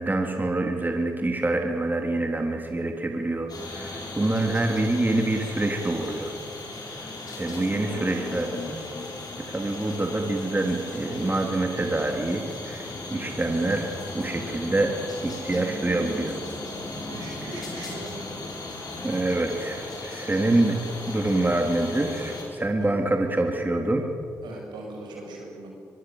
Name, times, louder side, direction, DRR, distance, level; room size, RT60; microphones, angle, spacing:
voice 1, 0.0-6.3 7.4-8.8 9.5-14.9 15.2-16.4 19.0-20.8 21.1-24.1, right 2 dB, 25° right, 3 dB, 3.4 m, -26 dB
frogs rain and spirits spatial, 3.5-22.4, left 2 dB, 60° left, 6.8 m, -37 dB
voice 2, 7.4-8.0 17.1-18.1 22.8-23.0 24.4-25.7, right 2 dB, 80° right, 0 dB, 7.0 m, -40 dB
23.5 x 22.5 x 8.0 m, 2.4 s
hypercardioid pair, 40°, 7 cm